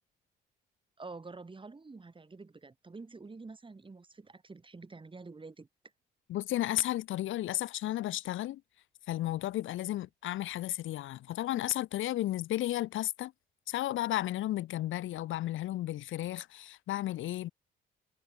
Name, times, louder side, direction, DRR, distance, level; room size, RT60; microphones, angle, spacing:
voice 1, 1.0-5.7, right 3 dB, 25° right, 7.1 m, -48 dB
voice 2, 6.3-8.6 9.1-13.3 13.7-17.5, left 14 dB, 80° left, 1.4 m, -33 dB
cardioid pair, 90°, 20 cm